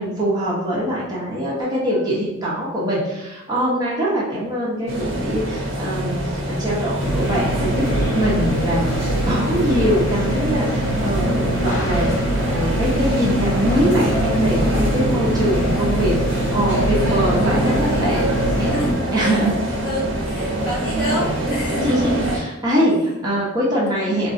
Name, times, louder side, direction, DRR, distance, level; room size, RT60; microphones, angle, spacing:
voice 1, 0.0-6.2 6.4-7.8 8.1-9.0 9.2-16.1 16.5-19.6 21.8-24.3, equal, 20° right, -6 dB, 0.7 m, -23 dB
sound 1, 4.9-22.4, right 1 dB, 70° right, 0.6 m, -24 dB
sound 2, 7.0-18.9, equal, 85° left, 0.6 m, -23 dB
voice 2, 18.6-19.4 19.8-22.4 24.0-24.1, equal, 50° left, -6 dB, 1.3 m, -29 dB
3.7 x 2.2 x 2.5 m, 0.95 s
head